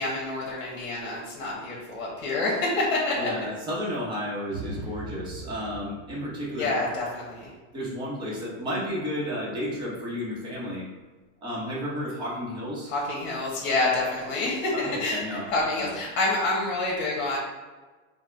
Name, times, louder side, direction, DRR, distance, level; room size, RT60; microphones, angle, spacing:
voice 1, 0.0-3.3 6.6-7.5 12.9-17.4, left 2 dB, 60° left, -4 dB, 1.3 m, -27 dB
voice 2, 3.2-6.7 7.7-10.9 11.4-12.9 14.7-16.0, equal, 10° right, -6 dB, 0.9 m, -32 dB
sound 1, 4.5-7.7, right 2 dB, 45° right, 0.8 m, -41 dB
4.7 x 2.2 x 4.5 m, 1.3 s
supercardioid pair, 160°, 40 cm